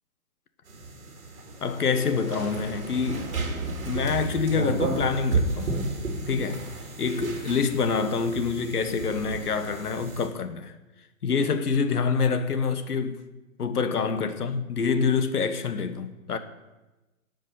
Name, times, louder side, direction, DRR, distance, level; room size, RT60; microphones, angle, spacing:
sound 1, 0.7-10.3, right 3 dB, 65° right, 2.9 m, -32 dB
voice 1, 1.6-3.3 3.9-5.8 6.3-6.7 7.0-10.7 11.2-13.2 13.6-16.4, left 5 dB, 85° left, 1.4 m, -26 dB
11.5 x 5.4 x 8.2 m
hypercardioid pair, 165°, 44 cm